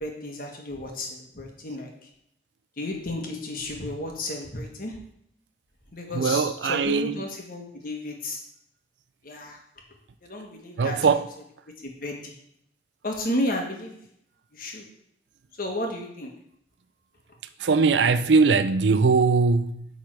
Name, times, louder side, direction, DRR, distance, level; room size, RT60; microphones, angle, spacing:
voice 1, 0.0-1.9 2.8-5.0 5.9-8.4 9.2-9.6 10.2-11.1 11.8-12.3 13.0-13.9 14.5-14.8 15.6-16.3, left 1 dB, 55° left, 1.4 m, -32 dB
voice 2, 6.1-7.1 10.8-11.2 17.6-19.9, right 4 dB, 90° right, 0.5 m, -21 dB
8.8 x 3.7 x 4.7 m
head